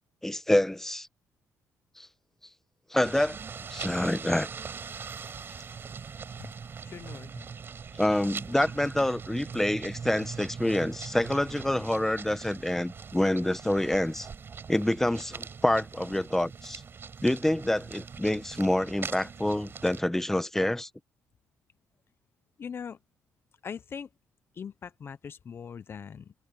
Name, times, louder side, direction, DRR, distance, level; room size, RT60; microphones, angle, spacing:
voice 1, 0.2-1.1 2.0-2.1 2.9-3.4 3.7-4.5 7.9-14.3 14.7-16.8 17.2-20.9, left 1 dB, 5° left, 1.3 m, -27 dB
sound 1, 3.0-20.0, right 6 dB, 45° right, 5.0 m, -41 dB
voice 2, 6.8-7.4 22.6-23.0 23.6-24.1 24.6-26.3, left 7 dB, 45° left, 0.8 m, -41 dB
cardioid pair, 75°, 5 cm